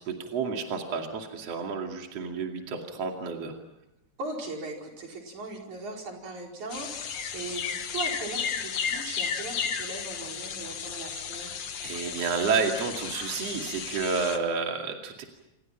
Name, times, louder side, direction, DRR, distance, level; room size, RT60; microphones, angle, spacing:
voice 1, 0.0-3.6 10.8-11.0 11.8-15.2, right 5 dB, 55° right, 2 dB, 3.4 m, -30 dB
voice 2, 4.2-11.5, right 3 dB, 70° right, 1 dB, 6.2 m, -39 dB
sound 1, 6.7-14.4, left 7 dB, 60° left, 2.6 m, -34 dB
28.0 x 27.0 x 5.8 m, 0.87 s
omnidirectional pair, 3.5 m